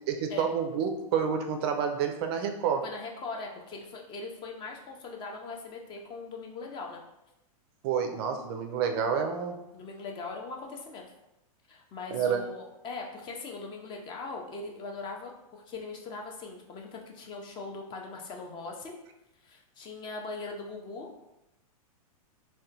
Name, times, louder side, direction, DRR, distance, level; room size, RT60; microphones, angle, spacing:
voice 1, 0.1-2.9 7.8-9.6 12.1-12.4, right 7 dB, 45° right, 5 dB, 0.4 m, -29 dB
voice 2, 2.8-7.0 9.7-11.1 11.7-18.9 19.4-21.1, left 3 dB, 25° left, 1 dB, 0.5 m, -40 dB
3.5 x 2.2 x 2.7 m, 0.89 s
hypercardioid pair, 130°, 19 cm